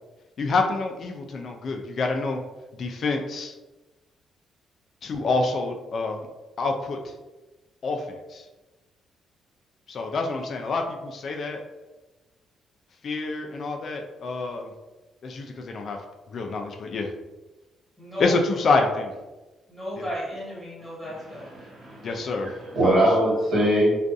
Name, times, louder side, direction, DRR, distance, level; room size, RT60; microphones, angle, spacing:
voice 1, 0.4-2.4 2.8-3.5 5.0-6.2 6.6-7.0 7.8-8.4 9.9-11.6 13.0-14.7 15.2-16.0 16.3-17.1 18.2-19.1 20.0-20.1 22.0-22.5 22.8-23.0, left 3 dB, 55° left, 3 dB, 0.3 m, -27 dB
voice 2, 18.0-18.4 19.7-21.5, equal, 5° left, -6 dB, 1.4 m, -34 dB
voice 3, 21.6-22.1 22.4-24.0, right 1 dB, 65° right, -6 dB, 1.4 m, -22 dB
2.4 x 2.3 x 2.5 m, 1.1 s
cardioid pair, 90°, 0 cm